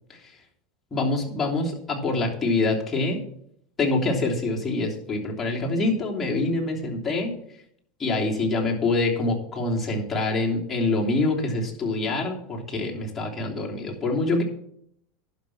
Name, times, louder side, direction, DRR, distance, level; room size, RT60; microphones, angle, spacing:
voice 1, 0.9-3.2 3.8-7.4 8.0-14.4, left 2 dB, 20° left, -2 dB, 3.0 m, -25 dB
11.0 x 6.0 x 7.1 m, 0.71 s
hypercardioid pair, 105°, 0 cm